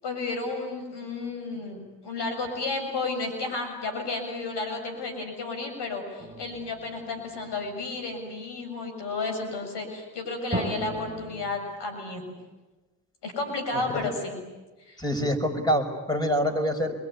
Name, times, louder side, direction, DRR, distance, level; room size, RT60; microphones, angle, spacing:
voice 1, 0.0-12.3 13.2-14.4 14.9-15.0, left 3 dB, 70° left, 5 dB, 7.3 m, -32 dB
sound 1, 6.2-8.0 10.5-11.5, right 1 dB, 20° right, 2.7 m, -36 dB
voice 2, 13.7-14.1 15.0-16.9, equal, 10° left, 4 dB, 5.9 m, -26 dB
26.0 x 22.5 x 9.8 m, 1.2 s
supercardioid pair, 60°, 42 cm